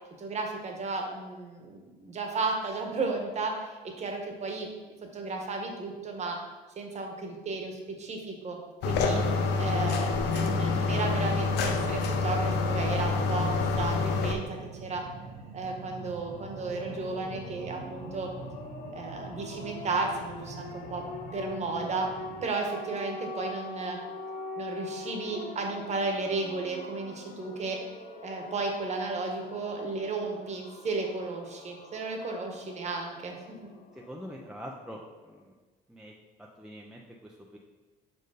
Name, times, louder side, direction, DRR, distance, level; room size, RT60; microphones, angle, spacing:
voice 1, 0.2-4.7 5.1-6.4 6.8-9.2 9.6-15.0 15.5-18.3 18.9-21.0 21.3-22.1 22.4-24.0 24.6-27.8 28.2-33.3, right 3 dB, 40° right, 2 dB, 1.2 m, -34 dB
sound 1, 8.8-14.3, left 4 dB, 85° left, 0.7 m, -27 dB
sound 2, 8.8-22.5, right 4 dB, 90° right, 0.9 m, -44 dB
sound 3, 16.0-35.4, left 3 dB, 55° left, 0.8 m, -44 dB
voice 2, 33.9-35.5 35.9-36.1 36.4-37.6, equal, 5° right, -1 dB, 0.6 m, -45 dB
5.2 x 4.6 x 4.9 m, 1.3 s
cardioid pair, 110°, 17 cm